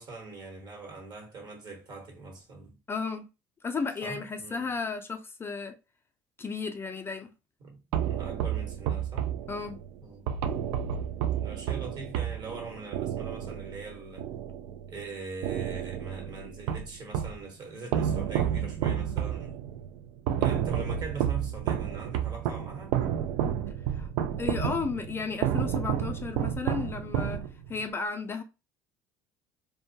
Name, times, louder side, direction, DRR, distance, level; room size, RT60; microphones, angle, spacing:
voice 1, 0.0-2.8 3.9-4.8 7.6-9.3 10.0-10.3 11.4-14.3 14.9-19.6 20.4-23.0, right 3 dB, 50° right, 1.1 m, -42 dB
voice 2, 2.9-3.3 3.6-5.7 6.4-7.3 9.5-9.8 23.9-24.1 24.4-27.4 27.7-28.4, left 4 dB, 25° left, 0.4 m, -33 dB
sound 1, 7.9-15.0 15.4-17.4 17.9-27.8, right 9 dB, 70° right, 0.4 m, -31 dB
2.2 x 2.1 x 2.6 m
supercardioid pair, 85°, 9 cm